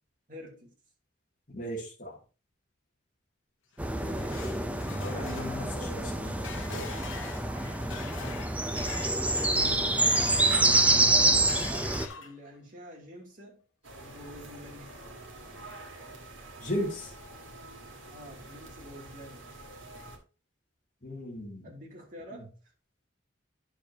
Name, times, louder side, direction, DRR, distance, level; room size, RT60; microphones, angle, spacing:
voice 1, 0.3-0.7 4.0-4.5 4.8-5.4 8.7-9.4 10.4-13.6 14.0-15.0 18.1-19.4 21.6-22.5, equal, 40° right, 2.8 m, -47 dB
voice 2, 1.5-2.2 5.0-6.9 16.6-17.1 21.0-21.7 22.3-22.5, equal, 40° left, 2.6 m, -36 dB
sound 1, 3.8-10.8 11.2-12.6, left 6 dB, 85° left, 1.0 m, -44 dB
sound 2, 3.8-12.1, right 2 dB, 5° right, 0.6 m, -27 dB
sound 3, 13.8-20.2, right 2 dB, 80° right, 2.1 m, -47 dB
10.0 x 6.8 x 2.9 m
head